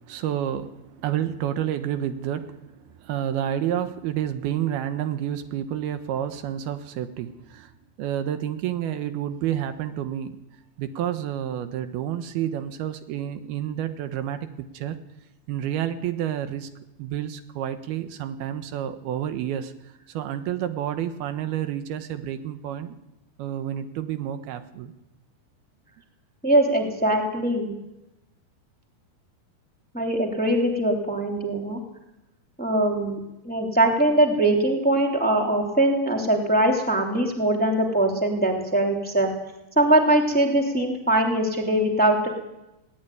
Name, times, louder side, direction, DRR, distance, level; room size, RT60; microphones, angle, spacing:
voice 1, 0.0-7.7 8.0-10.4 10.8-15.0 15.5-16.7 17.0-19.7 20.1-22.9 23.4-24.9, right 10 dB, 80° right, 9 dB, 3.1 m, -29 dB
voice 2, 26.4-27.7 29.9-31.8 32.6-33.2 33.4-39.3 39.8-42.3, right 1 dB, 5° left, 1 dB, 2.5 m, -22 dB
21.0 x 18.0 x 9.3 m, 0.95 s
omnidirectional pair, 4.4 m